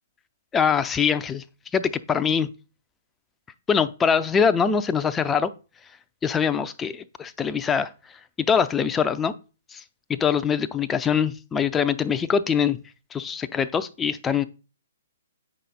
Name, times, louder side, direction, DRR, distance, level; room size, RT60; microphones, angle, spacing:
voice 1, 0.5-1.4 1.7-2.5 3.7-5.5 6.2-7.9 8.4-9.3 9.7-9.8 10.1-12.8 13.1-14.4, left 7 dB, 15° left, 11 dB, 0.6 m, -23 dB
9.1 x 5.6 x 4.2 m, 0.33 s
figure-of-eight pair, 125°, 0 cm